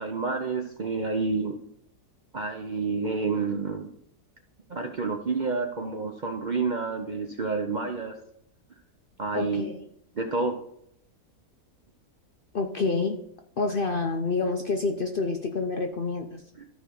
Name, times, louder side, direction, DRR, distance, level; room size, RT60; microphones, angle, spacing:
voice 1, 0.0-1.6 2.3-3.9 4.7-8.2 9.2-9.6 10.1-10.6 16.6-16.7, right 4 dB, 55° right, 3 dB, 0.5 m, -29 dB
voice 2, 9.3-9.9 12.5-13.2 13.6-16.4, left 3 dB, 55° left, 4 dB, 0.6 m, -28 dB
13.5 x 4.8 x 3.8 m, 0.73 s
omnidirectional pair, 1.7 m